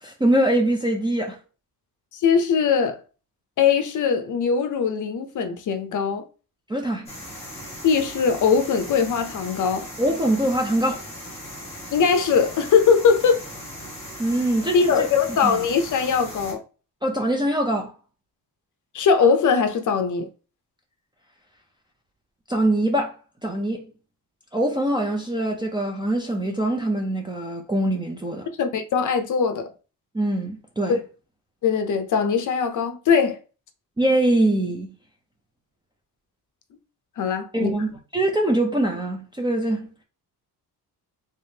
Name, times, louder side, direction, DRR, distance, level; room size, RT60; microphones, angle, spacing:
voice 1, 0.0-1.4 6.7-7.1 10.0-11.0 14.2-15.1 15.4-15.5 17.0-17.9 22.5-23.1 23.4-23.8 24.5-28.5 30.1-31.0 34.0-34.9 37.5-39.9, right 1 dB, 15° right, 0.4 m, -23 dB
voice 2, 2.1-3.0 3.6-6.2 7.8-9.9 11.9-13.4 14.7-16.6 18.9-20.3 28.6-29.7 30.9-31.0 31.6-33.4 37.2-37.7, left 6 dB, 50° left, 0.6 m, -21 dB
sound 1, 7.1-16.5, left 1 dB, 15° left, 1.5 m, -38 dB
3.5 x 3.4 x 2.7 m
wide cardioid pair, 175°, 39 cm